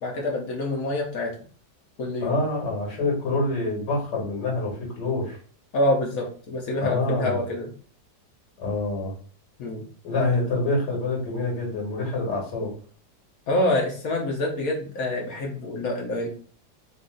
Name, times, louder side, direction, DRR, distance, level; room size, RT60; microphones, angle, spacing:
voice 1, 0.0-1.3 2.0-2.4 5.7-7.7 9.6-9.8 13.5-16.3, left 1 dB, 60° left, 0 dB, 1.2 m, -26 dB
voice 2, 2.2-5.4 6.8-7.4 8.6-9.1 10.0-12.7, left 2 dB, 80° left, -3 dB, 2.3 m, -26 dB
4.0 x 2.6 x 3.8 m, 0.44 s
omnidirectional pair, 1.8 m